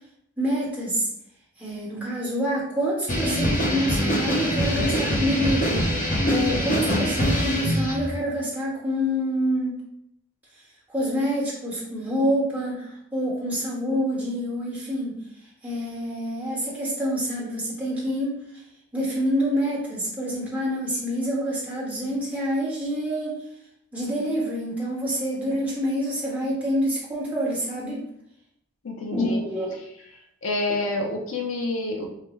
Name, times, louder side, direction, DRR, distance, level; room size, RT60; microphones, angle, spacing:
voice 1, 0.4-1.1 1.6-5.9 6.3-9.8 10.9-15.2 15.6-18.4 18.9-23.3 23.9-28.0 29.1-29.8 30.7-31.0, equal, 5° right, -6 dB, 1.1 m, -27 dB
sound 1, 3.1-8.1, equal, 40° left, 0.9 m, -23 dB
voice 2, 28.8-29.4 30.4-32.1, left 2 dB, 75° left, 2 dB, 0.7 m, -28 dB
5.6 x 2.2 x 3.2 m, 0.75 s
head